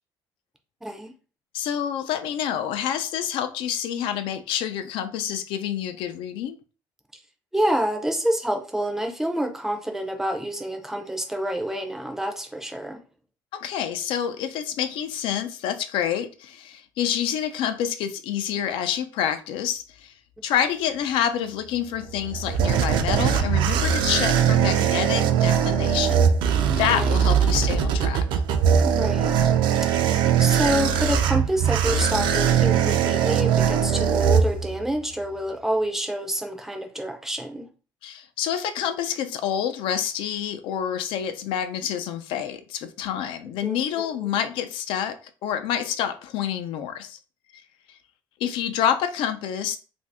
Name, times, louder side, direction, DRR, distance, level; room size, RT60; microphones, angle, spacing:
voice 1, 0.8-1.1 7.5-13.0 26.9-27.2 28.8-29.3 30.4-37.7 43.6-44.3, right 1 dB, 5° right, 0.4 m, -27 dB
voice 2, 1.5-6.6 13.5-20.1 20.4-26.3 26.7-28.4 38.0-47.2 47.9-48.0 48.4-49.8, left 9 dB, 80° left, 0.4 m, -28 dB
sound 1, 22.0-35.0, right 8 dB, 65° right, 0.4 m, -21 dB
2.7 x 2.6 x 3.3 m
cardioid pair, 175°, 9 cm